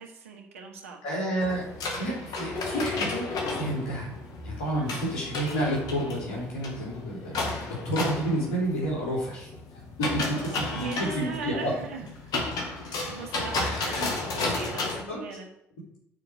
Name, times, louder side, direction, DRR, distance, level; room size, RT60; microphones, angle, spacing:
voice 1, 0.0-1.0 4.7-5.1 10.0-12.3 12.8-15.5, right 5 dB, 90° right, 2 dB, 1.3 m, -40 dB
voice 2, 1.0-1.6 2.0-4.1 4.4-9.5 9.7-11.7 13.6-14.0 15.1-15.3, right 1 dB, 80° left, -4 dB, 3.5 m, -30 dB
sound 1, 1.4-15.0, left 3 dB, 65° left, 1.9 m, -33 dB
8.9 x 4.8 x 6.4 m, 0.75 s
hypercardioid pair, 50°, 7 cm